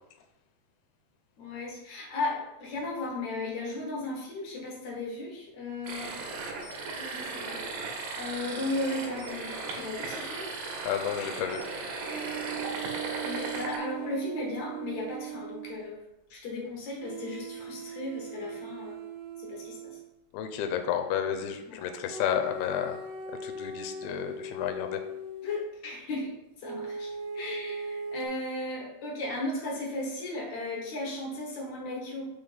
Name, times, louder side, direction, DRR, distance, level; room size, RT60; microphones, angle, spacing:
voice 1, 1.4-6.1 7.0-7.6 8.1-10.5 13.2-16.0 16.3-19.0 19.4-20.0 21.7-21.8 25.4-26.3 26.6-32.3, left 2 dB, 65° left, -2 dB, 1.9 m, -36 dB
sound 1, 5.8-13.8, right 3 dB, 65° right, 2.2 m, -36 dB
voice 2, 10.9-11.6 20.3-23.0 23.4-25.0, left 9 dB, 80° left, 7 dB, 2.5 m, -31 dB
sound 2, 12.1-15.8 17.0-20.1 22.1-25.6 26.6-28.3, right 4 dB, 85° right, 1.8 m, -39 dB
5.9 x 3.5 x 5.4 m, 0.88 s
omnidirectional pair, 4.8 m